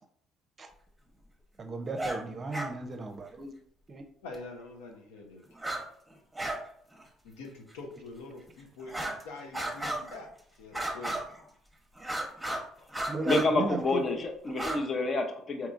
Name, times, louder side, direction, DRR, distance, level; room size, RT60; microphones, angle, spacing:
voice 1, 1.6-3.5 3.9-4.1 13.1-13.8, right 3 dB, 40° right, 0.5 m, -35 dB
sound 1, 1.9-2.2 2.5-2.7 4.3-4.4 5.5-5.8 6.1-6.6 6.9-7.0 7.7-7.8 8.8-9.2 9.5-10.2 10.7-11.4 12.0-12.6 12.9-13.5 14.5-14.8, right 1 dB, 10° right, 0.9 m, -34 dB
voice 2, 4.2-5.4 7.2-10.3 10.6-11.3, left 3 dB, 90° left, 0.7 m, -45 dB
voice 3, 13.3-15.7, left 2 dB, 45° left, 0.7 m, -28 dB
3.7 x 2.9 x 2.5 m
supercardioid pair, 65°, 0 cm